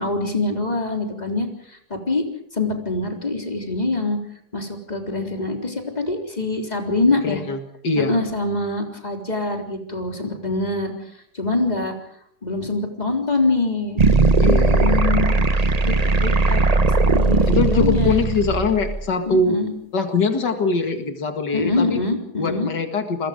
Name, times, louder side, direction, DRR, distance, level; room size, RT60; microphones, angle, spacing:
voice 1, 0.0-2.3 2.5-4.2 4.5-7.4 8.0-10.9 11.3-11.9 12.4-14.0 14.5-15.9 16.2-16.6 17.1-18.2 19.3-19.7 21.5-22.7, left 2 dB, 25° left, 2 dB, 3.9 m, -24 dB
voice 2, 7.1-8.1 14.4-15.0 17.5-19.6 19.9-22.0 22.4-23.3, left 4 dB, 85° left, 6 dB, 2.6 m, -23 dB
sound 1, 14.0-19.0, right 3 dB, 30° right, 0.8 m, -18 dB
28.5 x 22.5 x 5.2 m, 0.70 s
omnidirectional pair, 1.8 m